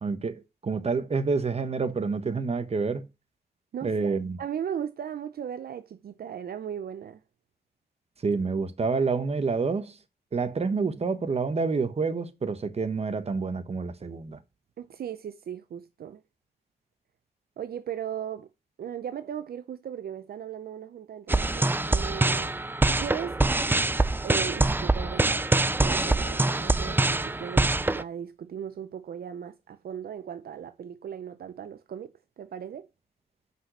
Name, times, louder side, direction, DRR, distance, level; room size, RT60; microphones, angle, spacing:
voice 1, 0.0-3.1 3.8-4.4 8.2-10.0 10.3-14.4, right 4 dB, 35° right, 1.1 m, -28 dB
voice 2, 3.7-7.2 14.8-16.2 17.6-18.5 18.8-22.5 22.9-23.4 24.2-25.4 25.8-32.1 32.4-32.9, right 9 dB, 60° right, 0.6 m, -37 dB
sound 1, 21.3-28.0, right 2 dB, 10° right, 0.4 m, -24 dB
5.9 x 5.5 x 6.3 m
cardioid pair, 90°, 18 cm